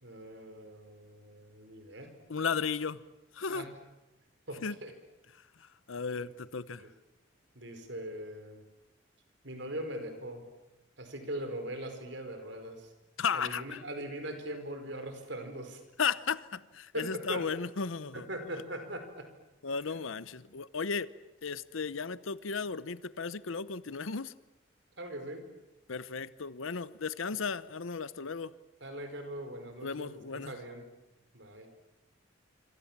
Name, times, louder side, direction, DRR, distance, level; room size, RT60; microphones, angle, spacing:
voice 1, 0.0-2.1 3.5-3.7 4.5-4.9 6.8-6.9 7.5-8.6 9.4-10.4 11.0-12.9 13.3-15.8 16.9-17.5 18.1-19.3 19.9-20.0 25.0-25.4 28.8-30.9 31.3-31.7, right 1 dB, 65° right, 7 dB, 4.7 m, -41 dB
voice 2, 2.3-3.0 3.4-3.7 4.6-4.7 5.9-6.8 13.2-13.8 16.0-18.2 19.6-21.1 21.4-24.3 25.9-28.5 29.8-30.5, left 5 dB, 85° left, 16 dB, 0.8 m, -35 dB
26.5 x 25.5 x 7.4 m, 1.0 s
head